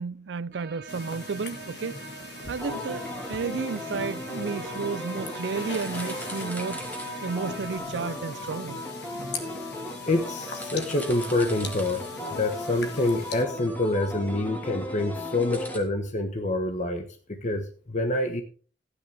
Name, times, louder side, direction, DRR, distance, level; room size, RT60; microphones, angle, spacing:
voice 1, 0.0-2.0 2.5-6.8 7.2-8.8, right 5 dB, 90° right, 0.5 m, -32 dB
sound 1, 0.5-7.8, right 6 dB, 60° right, 1.6 m, -44 dB
sound 2, 0.9-13.4, left 3 dB, 65° left, 2.2 m, -41 dB
sound 3, 2.6-15.8, left 1 dB, 10° left, 2.7 m, -36 dB
voice 2, 10.1-12.0 12.3-18.4, left 2 dB, 45° left, 1.2 m, -27 dB
15.5 x 9.7 x 3.5 m
head